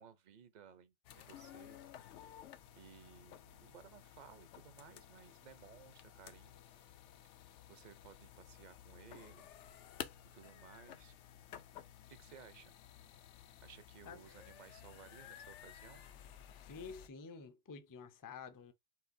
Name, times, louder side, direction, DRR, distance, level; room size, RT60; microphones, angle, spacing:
voice 1, 0.0-1.8 2.2-2.3 2.8-6.8 7.7-9.5 10.3-11.1 12.1-12.7 13.6-16.1, right 7 dB, 45° right, 0.6 m, -59 dB
sound 1, 1.0-17.1, left 10 dB, 75° left, 0.9 m, -54 dB
voice 2, 16.6-18.7, left 5 dB, 30° left, 0.3 m, -50 dB
4.8 x 3.7 x 2.6 m
omnidirectional pair, 1.2 m